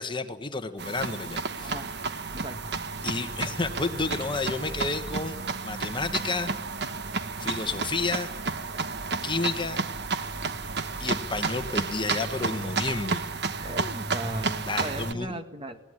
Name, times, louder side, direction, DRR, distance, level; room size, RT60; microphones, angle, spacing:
voice 1, 0.0-1.7 3.0-5.4 5.6-6.5 7.4-8.3 9.2-9.8 11.0-13.2 14.7-15.4, left 3 dB, 25° left, 9 dB, 1.3 m, -31 dB
sound 1, 0.8-15.1, right 4 dB, 60° right, 1.3 m, -32 dB
voice 2, 2.3-2.6 13.6-15.8, right 1 dB, 30° right, 8 dB, 1.8 m, -37 dB
20.0 x 18.0 x 9.9 m, 0.86 s
head